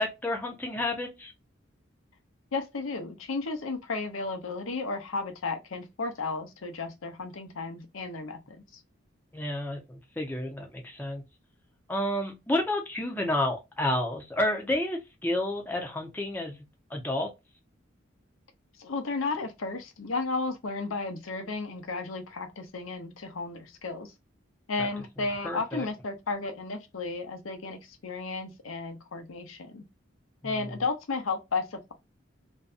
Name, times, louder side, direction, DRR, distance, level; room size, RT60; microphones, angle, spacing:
voice 1, 0.0-1.3 9.3-11.2 11.9-16.6 16.9-17.3 24.8-24.9 25.4-25.9, left 1 dB, 10° left, 0.6 m, -30 dB
voice 2, 2.5-8.6 18.8-24.1 24.7-29.8 30.4-31.9, left 3 dB, 90° left, 0.7 m, -33 dB
2.6 x 2.2 x 2.4 m
head